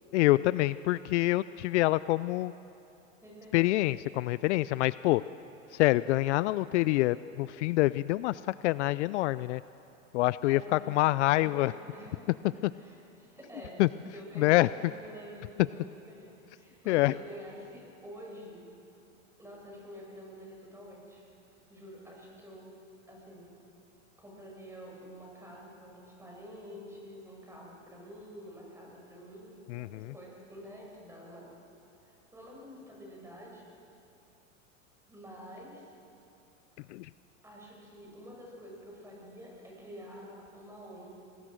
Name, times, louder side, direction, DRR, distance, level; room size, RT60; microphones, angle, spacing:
voice 1, 0.1-2.5 3.5-5.2 5.7-9.6 10.1-11.7 12.6-12.7 13.8-13.9 14.4-14.9 16.9-17.1 29.7-30.1 36.9-37.1, left 18 dB, 65° left, 17 dB, 0.5 m, -26 dB
voice 2, 3.2-3.8 10.5-13.9 14.1-18.6 19.4-21.2 21.7-22.7 23.1-23.5 24.2-31.6 32.0-33.6 35.1-35.9 37.4-41.1, equal, 5° right, -2 dB, 7.3 m, -48 dB
23.5 x 20.0 x 6.4 m, 2.8 s
hypercardioid pair, 115°, 39 cm